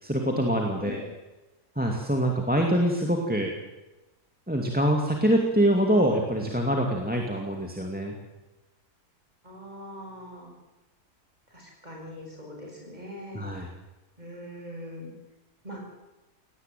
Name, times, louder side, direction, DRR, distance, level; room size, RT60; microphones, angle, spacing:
voice 1, 0.0-1.1 1.8-3.5 4.5-8.2 13.3-13.7, right 1 dB, 5° right, 1 dB, 2.3 m, -25 dB
voice 2, 9.4-10.6 11.5-13.5 14.2-15.1 15.6-15.8, left 1 dB, 25° right, 0 dB, 6.9 m, -41 dB
18.0 x 18.0 x 9.2 m, 1.1 s
omnidirectional pair, 1.7 m